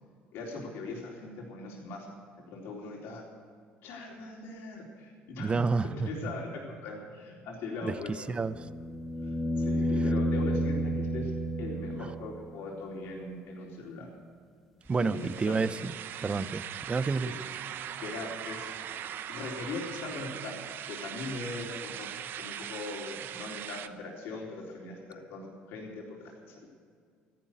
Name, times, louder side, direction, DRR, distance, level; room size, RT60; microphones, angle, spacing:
voice 1, 0.3-2.1 2.5-3.2 3.8-8.3 9.2-11.3 11.6-14.1 15.0-15.6 18.0-18.7 19.3-20.6 20.9-26.7, left 3 dB, 70° left, -1 dB, 3.9 m, -40 dB
voice 2, 5.4-6.1 7.8-7.9 8.3-8.7 14.9-15.9 16.2-17.3, right 4 dB, 25° right, 15 dB, 0.6 m, -29 dB
sound 1, 8.3-12.5 14.9-15.0, equal, ahead, 1.9 m, -30 dB
sound 2, 14.8-23.9, right 10 dB, 60° right, 0.8 m, -40 dB
14.0 x 11.5 x 8.2 m, 2.1 s
supercardioid pair, 80°, 4 cm